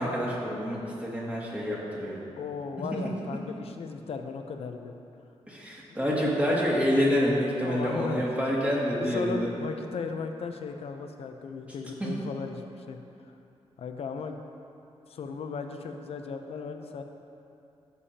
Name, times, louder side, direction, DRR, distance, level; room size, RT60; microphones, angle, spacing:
voice 1, 0.0-2.2 5.5-9.5 12.0-12.1, equal, 10° right, -6 dB, 2.3 m, -27 dB
voice 2, 2.4-4.9 5.9-6.0 7.6-8.3 9.0-13.0 13.8-14.4 15.1-17.0, left 5 dB, 65° left, 5 dB, 0.7 m, -36 dB
15.0 x 7.0 x 2.9 m, 2.7 s
cardioid pair, 105°, 11 cm